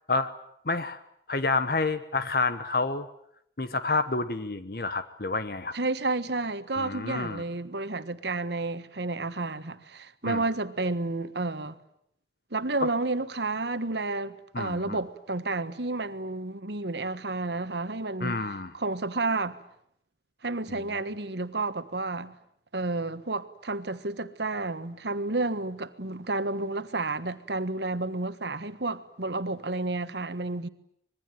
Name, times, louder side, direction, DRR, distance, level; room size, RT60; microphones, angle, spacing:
voice 1, 0.6-1.0 1.3-3.1 3.6-5.7 6.8-7.4 10.2-10.4 14.5-15.0 18.2-18.7, left 3 dB, 55° left, 1.1 m, -29 dB
voice 2, 5.7-11.8 12.5-18.4 18.7-19.6 20.4-22.3 22.7-30.7, right 2 dB, 75° right, 1.5 m, -31 dB
25.5 x 22.0 x 9.3 m
head